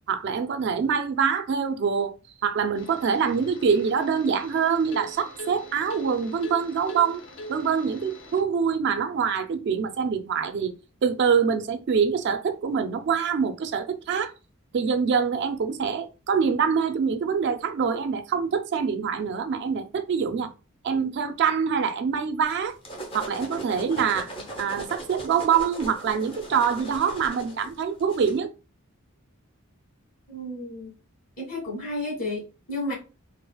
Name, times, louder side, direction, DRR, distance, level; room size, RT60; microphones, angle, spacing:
voice 1, 0.1-2.1 2.4-7.2 7.5-10.7 11.0-14.3 14.7-20.5 20.8-22.7 23.1-24.3 24.6-28.5, right 6 dB, 55° right, 0.3 m, -25 dB
sound 1, 2.7-8.4, equal, 60° left, 0.7 m, -42 dB
sound 2, 22.5-28.4, right 1 dB, 25° left, 0.6 m, -39 dB
voice 2, 30.3-30.9 31.4-32.9, left 1 dB, 40° left, 1.7 m, -32 dB
3.9 x 2.0 x 2.2 m
head